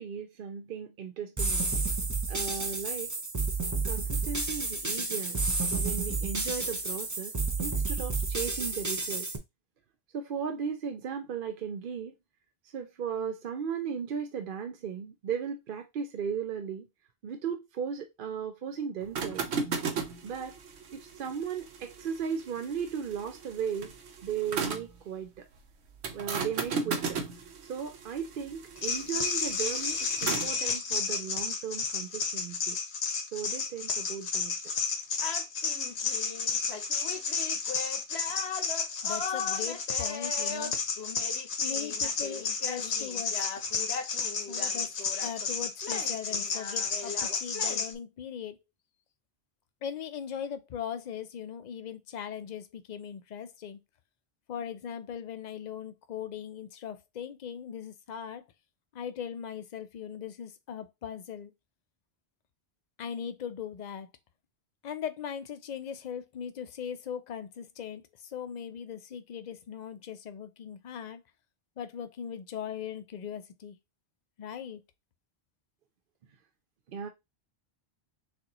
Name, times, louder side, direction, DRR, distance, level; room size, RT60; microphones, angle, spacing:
voice 1, 0.0-1.7 2.3-3.2 3.8-9.3 10.1-12.1 12.7-16.9 17.2-19.5 20.2-20.6 20.9-23.9 24.2-25.5 26.1-27.2 27.6-32.8 33.3-34.5 76.9-77.1, right 7 dB, 60° right, 0.7 m, -36 dB
sound 1, 1.4-9.4, right 3 dB, 20° right, 0.6 m, -31 dB
sound 2, 19.0-25.0 26.0-30.6, right 5 dB, 90° right, 1.0 m, -36 dB
sound 3, 28.8-47.9, left 5 dB, 80° left, 1.1 m, -31 dB
voice 2, 39.0-40.7 41.6-43.4 44.5-48.6 49.8-53.8 54.5-58.4 58.9-61.5 63.0-64.1 64.8-71.2 71.8-73.8 74.4-74.8, left 8 dB, 50° left, 0.6 m, -39 dB
6.4 x 2.5 x 2.9 m
omnidirectional pair, 1.1 m